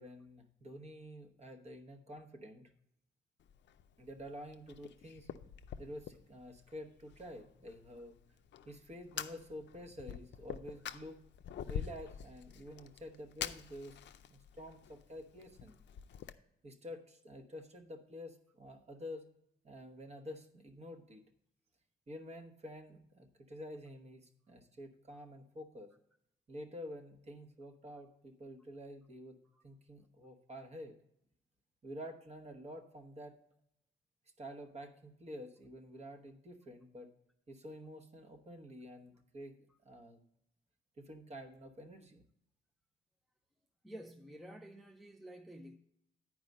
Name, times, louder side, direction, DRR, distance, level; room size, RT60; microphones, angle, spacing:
voice 1, 0.0-2.7 4.0-5.3 5.8-8.2 8.7-11.2 11.7-14.0 14.3-15.8 16.6-19.2 19.6-21.3 22.1-25.9 26.5-31.0 31.8-33.4 34.4-37.1 37.5-40.2 41.0-42.2, equal, 35° right, 5 dB, 1.0 m, -49 dB
Fire, 3.4-16.3, left 9 dB, 65° left, 0.5 m, -47 dB
voice 2, 43.8-45.8, equal, ahead, 4 dB, 0.4 m, -50 dB
10.5 x 4.8 x 5.2 m, 0.75 s
wide cardioid pair, 170°, 20 cm